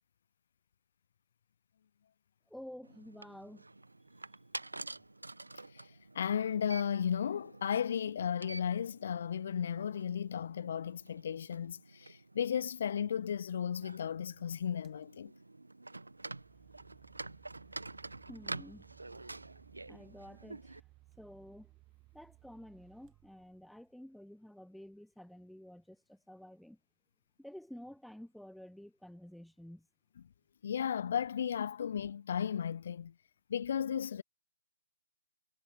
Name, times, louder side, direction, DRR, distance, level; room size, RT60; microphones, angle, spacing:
voice 1, 2.5-3.7 18.3-18.9 19.9-20.8 21.2-21.7 22.1-26.8 27.4-29.9, equal, ahead, 1.0 m, -51 dB
sound 1, 2.8-20.8, right 2 dB, 85° right, 1.3 m, -49 dB
voice 2, 5.7-15.3 30.6-33.1 33.5-34.2, left 8 dB, 55° left, 0.6 m, -35 dB
sound 2, 14.8-15.0 15.9-24.0, right 20 dB, 20° right, 1.6 m, -62 dB
figure-of-eight pair, 135°, 0 cm